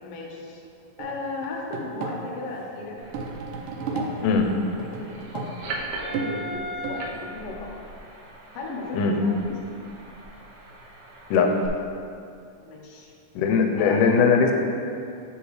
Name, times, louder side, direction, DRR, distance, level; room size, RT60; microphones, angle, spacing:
voice 1, 0.0-0.6 1.0-3.0 3.9-4.5 5.0-5.6 6.1-7.8 8.5-9.6 12.6-13.1 13.8-14.0, left 3 dB, 65° left, -2 dB, 1.5 m, -36 dB
sound 1, 1.0-7.3, right 3 dB, 85° right, 2.3 m, -34 dB
sound 2, 2.9-11.7, right 1 dB, 70° right, 1.9 m, -39 dB
voice 2, 13.4-14.5, left 5 dB, 90° left, 3 dB, 2.2 m, -19 dB
7.1 x 7.0 x 3.2 m, 2.5 s
omnidirectional pair, 3.7 m